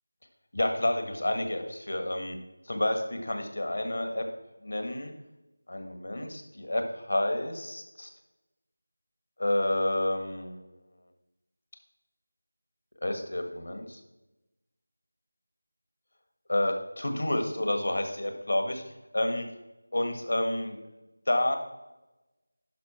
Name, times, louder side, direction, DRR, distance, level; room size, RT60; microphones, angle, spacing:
voice 1, 0.5-2.4 2.7-4.3 4.6-5.1 5.7-8.1 9.4-10.6 13.0-14.0 16.5-18.8 19.1-19.5 19.9-20.8 21.3-21.6, left 1 dB, 65° left, 6 dB, 1.7 m, -29 dB
11.5 x 5.4 x 4.3 m, 1.0 s
figure-of-eight pair, 175°, 0 cm